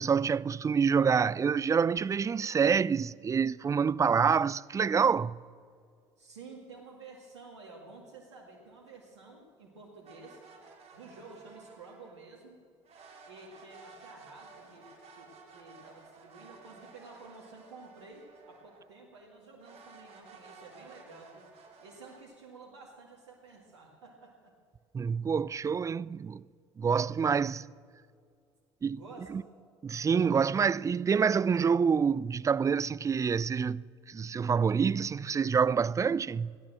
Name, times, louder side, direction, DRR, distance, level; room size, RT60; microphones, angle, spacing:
voice 1, 0.0-5.4 24.9-26.4 26.8-27.7 28.8-29.0 29.3-29.4 29.8-36.5, right 6 dB, 20° right, 0.4 m, -27 dB
voice 2, 6.2-10.4 10.9-12.6 13.2-21.5 21.8-24.6 28.9-29.3, right 3 dB, 90° right, 2.0 m, -51 dB
sound 1, 10.0-12.3 12.8-19.0 19.6-22.2, right 4 dB, 45° right, 3.1 m, -54 dB
16.5 x 11.0 x 7.5 m
hypercardioid pair, 65°, 14 cm